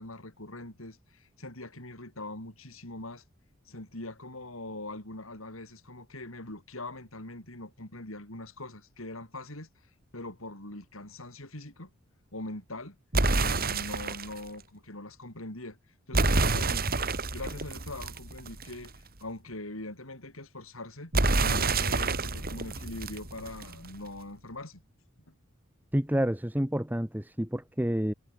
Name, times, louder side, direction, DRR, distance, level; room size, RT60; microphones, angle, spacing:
voice 1, 0.0-3.2 3.7-9.7 10.1-11.9 12.3-13.0 13.3-15.8 16.1-16.9 17.3-24.8, left 2 dB, 85° left, 6.7 m, -42 dB
sound 1, 13.1-14.4 16.1-18.9 21.1-23.9, right 3 dB, 50° right, 3.7 m, -28 dB
voice 2, 25.9-28.1, equal, 10° right, 1.6 m, -29 dB
head